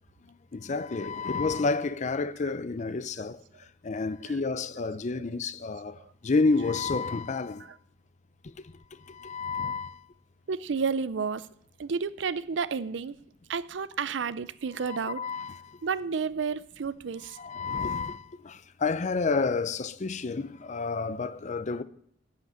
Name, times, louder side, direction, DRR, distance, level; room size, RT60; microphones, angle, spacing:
voice 1, 0.5-3.4 3.8-7.7 8.4-8.5 8.9-10.0 14.8-15.8 17.4-21.8, left 4 dB, 40° left, 0.5 m, -30 dB
voice 2, 10.5-11.5 11.8-13.2 13.5-15.2 15.8-17.4, right 5 dB, 80° right, 0.5 m, -31 dB
8.3 x 8.0 x 8.8 m
head